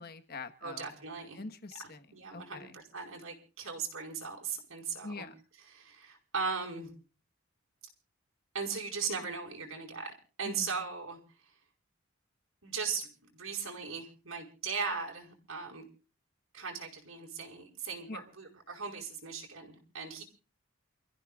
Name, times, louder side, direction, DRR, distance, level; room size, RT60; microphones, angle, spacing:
voice 1, 0.0-0.9 1.3-2.0 2.3-2.7 5.0-5.3 10.4-10.7 18.1-18.2, left 3 dB, 50° left, 8 dB, 1.4 m, -44 dB
voice 2, 0.6-1.4 2.1-5.3 5.7-6.9 8.5-11.5 12.6-15.8 16.5-20.2, right 5 dB, 80° right, 1 dB, 5.1 m, -38 dB
29.5 x 15.0 x 2.4 m, 0.36 s
head